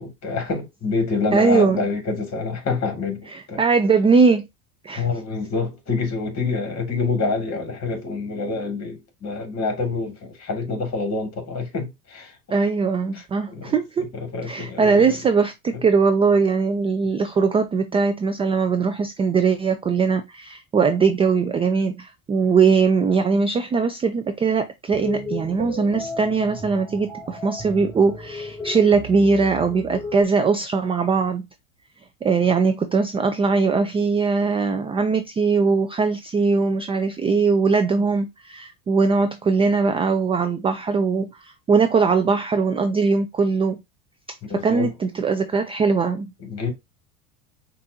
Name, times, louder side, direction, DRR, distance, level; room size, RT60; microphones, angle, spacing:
voice 1, 0.0-3.6 5.0-12.7 13.1-15.1 15.7-15.8 44.5-44.9 46.4-46.7, left 4 dB, 35° left, 2.2 m, -27 dB
voice 2, 1.3-1.8 3.3-4.5 4.8-5.0 12.5-14.1 14.5-31.5 32.2-43.8 44.5-46.3, right 4 dB, 15° right, 0.3 m, -20 dB
sound 1, 24.9-30.2, left 2 dB, 10° left, 2.3 m, -33 dB
5.5 x 2.6 x 2.7 m
supercardioid pair, 95°, 42 cm